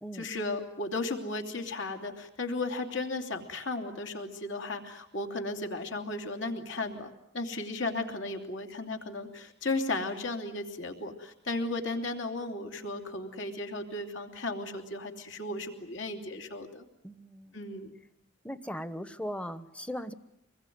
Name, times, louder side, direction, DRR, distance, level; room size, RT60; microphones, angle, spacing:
voice 1, 0.1-16.8 17.5-17.9, left 2 dB, 70° left, 4 dB, 3.0 m, -35 dB
voice 2, 17.0-17.6 18.4-20.1, equal, 5° left, 12 dB, 0.9 m, -38 dB
26.0 x 21.0 x 9.4 m, 0.80 s
head